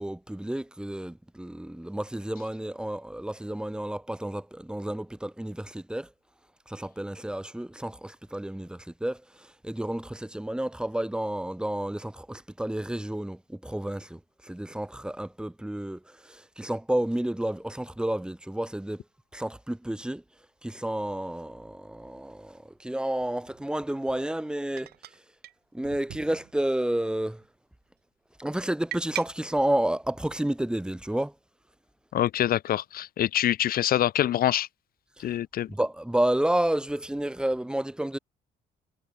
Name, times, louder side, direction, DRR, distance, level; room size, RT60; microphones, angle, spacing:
voice 1, 0.0-6.1 6.7-19.0 19.3-20.2 20.6-24.9 25.7-27.4 28.4-31.3 35.2-35.3 35.7-38.2, right 1 dB, 5° right, 4.2 m, -30 dB
sound 1, 21.7-21.8 23.4-23.7 24.8-25.2 25.4-25.5 25.8-26.7 27.1-27.5 28.9-29.3, right 14 dB, 70° right, 2.0 m, -40 dB
voice 2, 32.1-34.7 35.2-35.7, left 12 dB, 60° left, 2.1 m, -25 dB
cardioid pair, 110°, 17 cm